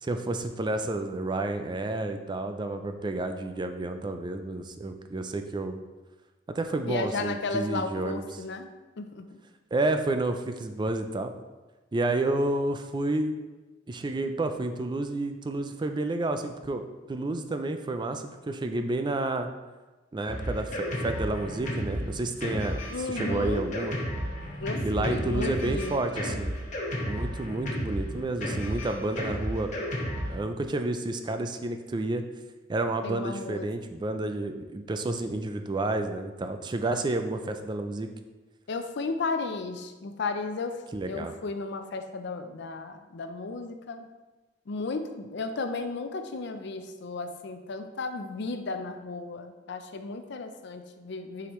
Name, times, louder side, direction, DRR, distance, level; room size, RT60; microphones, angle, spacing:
voice 1, 0.0-5.8 6.5-8.4 9.7-11.3 11.9-13.4 13.9-16.8 17.1-19.5 20.1-24.0 24.8-26.5 27.1-29.7 30.3-32.2 32.7-38.1 40.9-41.3, right 2 dB, 25° right, 7 dB, 0.4 m, -30 dB
voice 2, 6.9-8.7 9.0-9.3 22.9-23.6 24.6-26.0 33.0-33.7 38.7-40.8 41.0-44.1 44.7-51.5, left 3 dB, 65° left, 7 dB, 0.5 m, -34 dB
Drum kit, 20.3-30.4, equal, 40° left, 1.4 m, -32 dB
6.6 x 4.8 x 3.1 m, 1.2 s
head